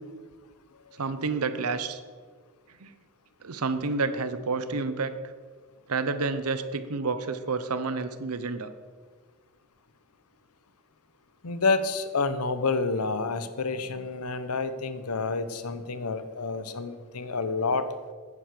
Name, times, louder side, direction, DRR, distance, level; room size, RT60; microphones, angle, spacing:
voice 1, 1.0-2.0 2.8-2.9 3.4-5.1 5.9-8.7 13.3-13.4, right 4 dB, 85° right, 12 dB, 0.9 m, -29 dB
voice 2, 11.4-17.9, left 4 dB, 90° left, 12 dB, 0.9 m, -29 dB
10.5 x 9.8 x 6.6 m, 1.5 s
head